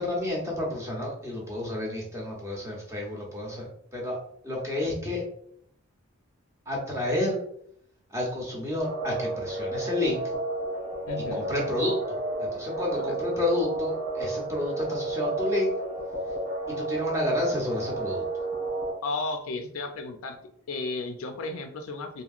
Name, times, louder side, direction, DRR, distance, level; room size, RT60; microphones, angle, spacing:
voice 1, 0.0-3.7 3.9-4.2 4.4-5.2 6.7-7.4 8.1-10.2 11.3-15.7 16.8-18.2, left 1 dB, 15° right, -3 dB, 0.8 m, -30 dB
sound 1, 8.8-18.9, right 2 dB, 65° right, 1.3 m, -32 dB
voice 2, 11.1-11.5 13.0-13.1 19.0-20.4 20.7-22.2, left 3 dB, 75° left, 6 dB, 0.4 m, -33 dB
2.9 x 2.6 x 2.4 m, 0.69 s
head